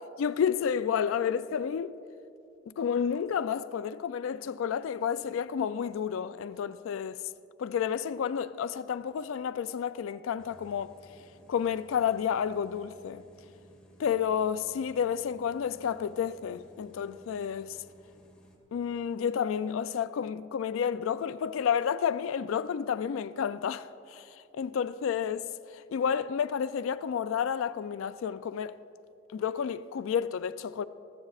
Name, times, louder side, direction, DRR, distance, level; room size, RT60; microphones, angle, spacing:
voice 1, 0.2-2.0 2.7-7.2 7.6-10.9 11.5-13.2 14.0-17.8 18.7-25.4 25.7-28.8 29.3-30.8, left 7 dB, 85° left, 0.3 m, -30 dB
sound 1, 10.4-18.6, equal, 5° left, 1.6 m, -58 dB
20.0 x 14.5 x 2.4 m
head